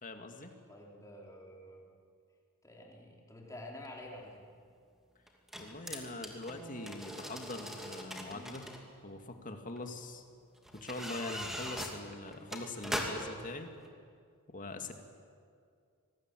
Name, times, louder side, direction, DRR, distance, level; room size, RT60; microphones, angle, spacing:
voice 1, 0.0-0.5 5.6-8.7 9.0-10.2 10.7-13.7 14.5-14.9, left 2 dB, 35° left, 5 dB, 2.2 m, -43 dB
voice 2, 0.7-1.8 2.6-4.4, left 1 dB, 15° left, -1 dB, 4.1 m, -49 dB
sound 1, 3.9-4.0 5.3-8.8 9.8-9.9 10.7-13.4 13.9-14.0, equal, ahead, 2.7 m, -41 dB
26.0 x 19.5 x 9.2 m, 2.2 s
head